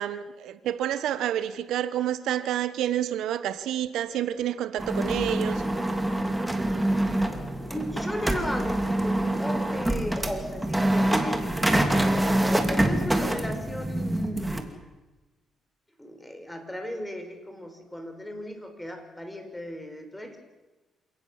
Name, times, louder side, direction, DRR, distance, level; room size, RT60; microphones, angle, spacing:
voice 1, 0.0-5.6, right 11 dB, 80° right, 1.1 m, -29 dB
sound 1, 4.8-14.6, right 1 dB, 10° right, 2.9 m, -26 dB
voice 2, 7.7-11.4 12.4-14.7 16.0-20.4, equal, 10° left, 4.8 m, -36 dB
28.0 x 18.0 x 7.4 m
cardioid pair, 90°, 0 cm